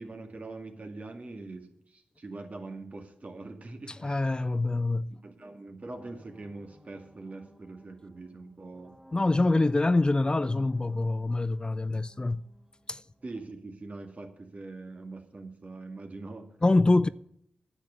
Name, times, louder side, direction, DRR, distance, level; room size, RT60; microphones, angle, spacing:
voice 1, 0.0-4.4 5.1-8.9 13.2-16.5 17.0-17.1, right 3 dB, 50° right, 2.1 m, -43 dB
voice 2, 3.9-5.1 9.1-12.4 12.9-13.0 16.6-17.1, left 2 dB, 25° left, 0.4 m, -25 dB
sound 1, 5.8-13.5, right 1 dB, 15° right, 2.0 m, -56 dB
9.9 x 6.9 x 8.6 m
supercardioid pair, 40°, 3 cm